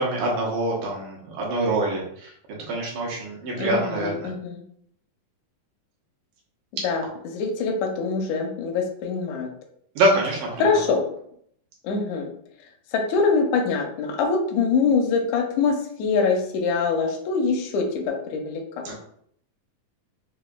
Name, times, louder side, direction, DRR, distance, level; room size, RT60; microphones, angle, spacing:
voice 1, 0.0-2.3 2.7-4.3 10.0-10.7 18.9-19.0, right 1 dB, 80° right, -3 dB, 2.5 m, -25 dB
voice 2, 3.5-4.6 6.8-9.5 10.6-11.0 11.8-12.3 12.9-18.9, left 4 dB, 80° left, 2 dB, 1.7 m, -24 dB
5.7 x 2.4 x 2.2 m, 0.67 s
omnidirectional pair, 3.8 m